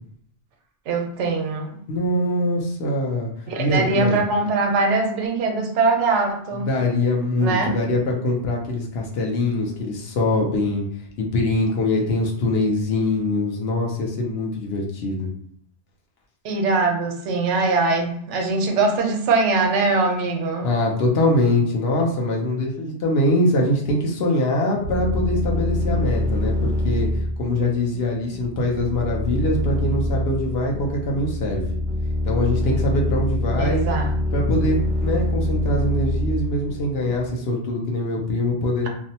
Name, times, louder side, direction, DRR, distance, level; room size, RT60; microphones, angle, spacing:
voice 1, 0.9-1.8 3.5-6.7 7.4-7.8 16.4-20.7 33.6-34.1, right 3 dB, 85° right, 3 dB, 0.9 m, -22 dB
voice 2, 1.9-3.3 3.6-4.2 6.6-10.9 11.2-15.3 20.6-27.1 27.4-31.8 32.3-33.9 34.3-38.9, left 1 dB, 65° left, -1 dB, 0.8 m, -23 dB
sound 1, 24.8-37.3, left 1 dB, 55° right, 0.6 m, -25 dB
2.6 x 2.0 x 2.7 m, 0.62 s
omnidirectional pair, 1.2 m